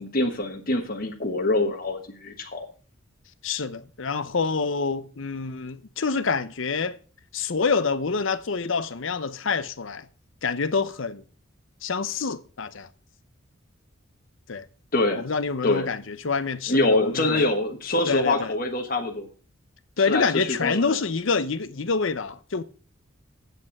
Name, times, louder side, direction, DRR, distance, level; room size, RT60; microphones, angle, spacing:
voice 1, 0.0-2.7 14.9-15.3 15.6-15.9 16.7-19.3 20.1-21.0, left 2 dB, 45° left, 1.3 m, -25 dB
voice 2, 3.4-7.0 7.3-10.1 10.4-11.2 11.8-12.9 14.5-14.7 15.2-17.4 18.1-18.5 20.0-22.6, left 5 dB, 70° left, 0.8 m, -27 dB
8.4 x 6.6 x 7.1 m
head